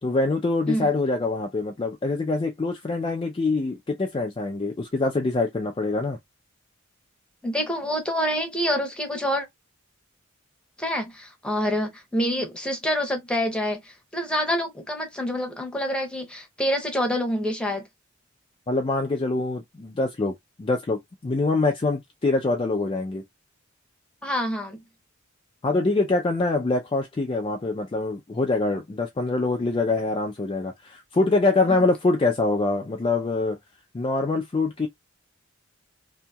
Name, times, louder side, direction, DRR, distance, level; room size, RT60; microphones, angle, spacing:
voice 1, 0.0-6.2 18.7-23.2 25.6-33.6 33.9-34.9, left 3 dB, 25° left, 0.4 m, -24 dB
voice 2, 7.4-9.5 10.8-17.9 24.2-24.8, equal, 5° left, 0.8 m, -27 dB
2.7 x 2.7 x 2.2 m
head